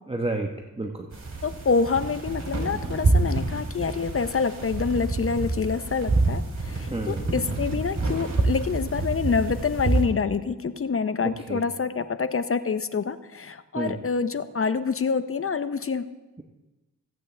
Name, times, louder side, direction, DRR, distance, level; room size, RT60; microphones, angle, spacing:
voice 1, 0.1-1.1 6.9-7.2 11.5-11.6 13.7-14.0, right 2 dB, 15° right, 2 dB, 1.0 m, -30 dB
sound 1, 1.1-10.0, right 3 dB, 50° right, 3.3 m, -27 dB
voice 2, 1.4-16.1, left 5 dB, 40° left, 12 dB, 0.7 m, -27 dB
16.5 x 8.2 x 3.3 m, 1.1 s
cardioid pair, 50°, 35 cm